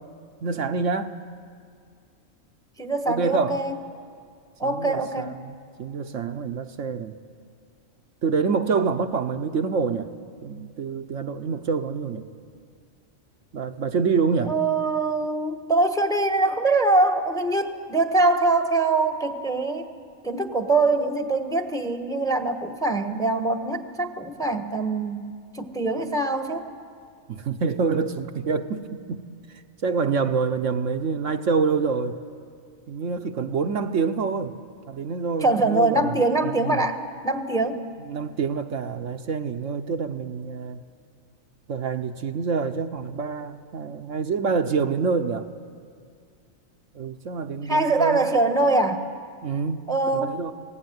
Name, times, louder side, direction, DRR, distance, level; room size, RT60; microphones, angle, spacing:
voice 1, 0.4-1.2 3.1-3.6 4.6-7.2 8.2-10.1 10.4-12.3 13.5-14.6 27.3-29.2 29.8-32.2 32.9-34.5 34.9-36.2 36.6-36.8 38.1-40.8 41.7-45.5 46.9-48.2 49.4-49.8 50.1-50.5, right 5 dB, 65° right, 7 dB, 1.2 m, -26 dB
voice 2, 2.8-3.8 4.6-5.3 14.4-19.9 20.2-26.7 35.4-37.8 47.7-49.1 49.9-50.4, right 2 dB, 5° left, 7 dB, 1.1 m, -23 dB
25.5 x 18.0 x 9.4 m, 2.2 s
omnidirectional pair, 1.4 m